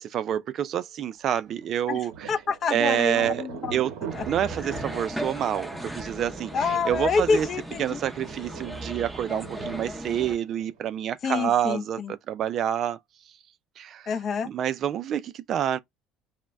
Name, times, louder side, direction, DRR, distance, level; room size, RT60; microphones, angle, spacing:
voice 1, 0.0-2.1 2.7-3.4 3.7-3.9 4.3-6.5 6.9-7.5 7.8-13.0 13.8-14.1 14.4-15.8, right 10 dB, 55° right, 0.3 m, -27 dB
Thunder, 1.6-11.1, right 7 dB, 80° right, 0.7 m, -42 dB
voice 2, 1.9-3.8 4.1-4.3 6.5-8.0 11.2-12.1 14.1-14.5, left 5 dB, 45° left, 0.4 m, -27 dB
sound 1, 4.1-10.4, right 1 dB, 5° right, 0.5 m, -37 dB
2.1 x 2.0 x 3.4 m
supercardioid pair, 85°, 0 cm